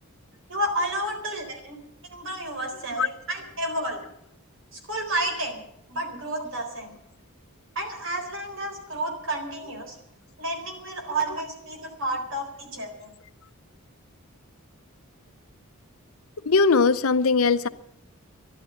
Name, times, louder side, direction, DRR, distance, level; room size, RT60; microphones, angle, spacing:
voice 1, 0.5-1.8 2.1-4.0 4.7-7.0 7.8-10.0 10.4-13.1, right 1 dB, 60° right, 4.1 m, -31 dB
voice 2, 16.4-17.7, left 4 dB, 75° left, 0.8 m, -20 dB
12.0 x 11.5 x 9.0 m
head